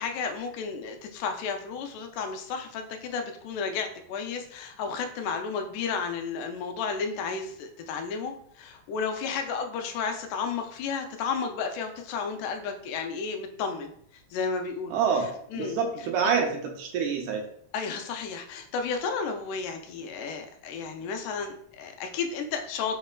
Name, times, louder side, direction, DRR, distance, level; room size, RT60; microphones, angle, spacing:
voice 1, 0.0-15.0 15.5-15.8 17.7-23.0, left 5 dB, 85° left, 5 dB, 2.0 m, -32 dB
voice 2, 14.9-17.5, right 6 dB, 80° right, 2 dB, 2.0 m, -27 dB
4.9 x 3.1 x 2.2 m, 0.65 s
omnidirectional pair, 3.6 m